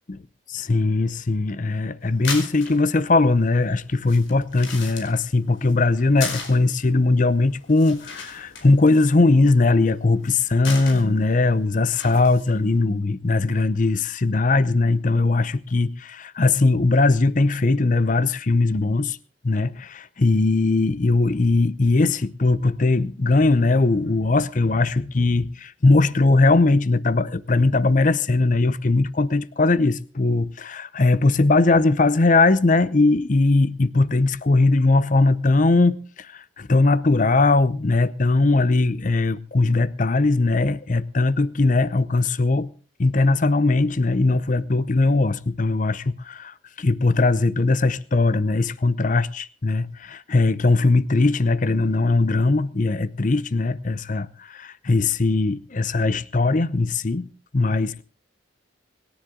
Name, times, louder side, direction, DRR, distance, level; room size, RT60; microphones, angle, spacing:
voice 1, 0.5-19.2 19.4-42.7 43.0-57.3 57.5-58.0, left 3 dB, 40° left, 0.6 m, -20 dB
sound 1, 2.0-12.8, left 5 dB, 75° left, 4.9 m, -38 dB
25.5 x 10.5 x 3.8 m
head